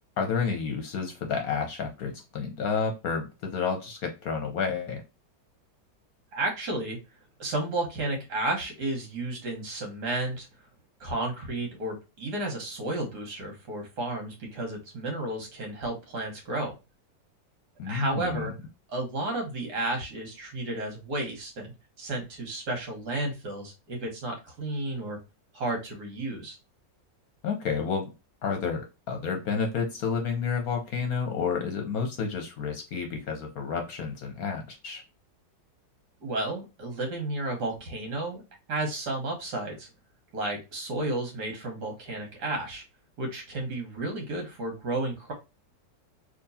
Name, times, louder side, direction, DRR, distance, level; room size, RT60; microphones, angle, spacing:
voice 1, 0.2-5.0 17.8-18.5 27.4-28.1 28.4-35.0, left 5 dB, 60° left, 4 dB, 1.0 m, -30 dB
voice 2, 6.3-7.0 7.4-10.5 11.0-16.7 17.8-18.5 18.9-25.2 25.5-26.6 36.2-38.4 38.7-39.9 40.3-42.8 43.2-45.3, right 2 dB, 65° right, 2 dB, 1.8 m, -32 dB
3.6 x 2.8 x 2.7 m, 0.27 s
omnidirectional pair, 2.0 m